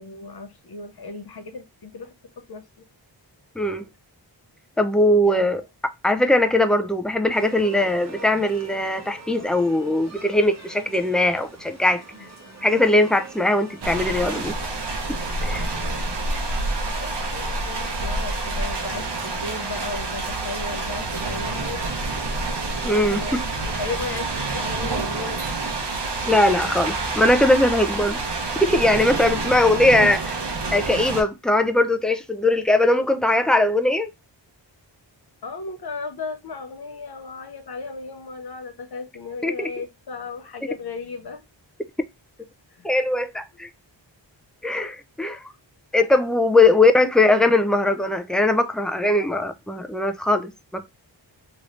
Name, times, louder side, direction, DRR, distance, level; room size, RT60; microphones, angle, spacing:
voice 1, 0.0-2.6 5.2-5.5 12.2-12.3 15.8-16.1 16.9-21.8 22.8-23.4 23.8-25.4 26.7-26.8 27.1-27.2 35.4-41.4 42.7-42.9, left 3 dB, 55° left, 0.7 m, -35 dB
voice 2, 4.8-5.6 6.0-12.0 12.6-14.6 15.4-15.7 22.8-23.4 26.3-28.2 28.5-30.3 30.7-34.1 39.4-39.7 42.8-43.7 44.6-45.4 45.9-50.9, left 2 dB, ahead, 0.4 m, -20 dB
sound 1, 7.3-26.6, right 3 dB, 35° right, 1.0 m, -43 dB
sound 2, 13.8-31.2, right 3 dB, 60° right, 0.9 m, -28 dB
3.1 x 3.0 x 2.5 m
wide cardioid pair, 65°, 45 cm